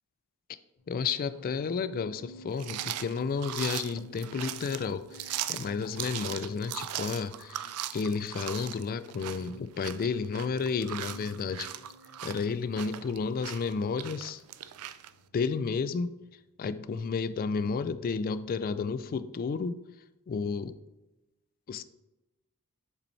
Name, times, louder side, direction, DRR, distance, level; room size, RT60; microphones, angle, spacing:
sound 1, 0.8-17.4 17.7-18.0, left 1 dB, 65° left, 0.7 m, -55 dB
voice 1, 0.9-11.7 12.2-14.4 15.3-16.2 16.6-19.8 20.3-20.8 21.7-21.8, left 5 dB, 40° left, 14 dB, 0.3 m, -32 dB
sound 2, 2.6-15.1, right 12 dB, 80° right, 0.4 m, -39 dB
7.1 x 5.3 x 3.2 m, 1.0 s
head